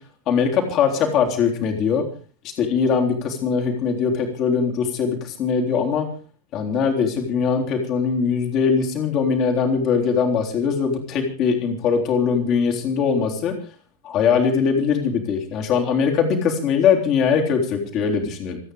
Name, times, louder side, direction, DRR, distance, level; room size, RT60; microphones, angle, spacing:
voice 1, 0.3-2.0 2.6-6.1 6.5-13.5 14.0-18.6, left 6 dB, 35° left, 2 dB, 3.7 m, -21 dB
28.0 x 9.5 x 5.0 m, 0.39 s
figure-of-eight pair, 90°, 0 cm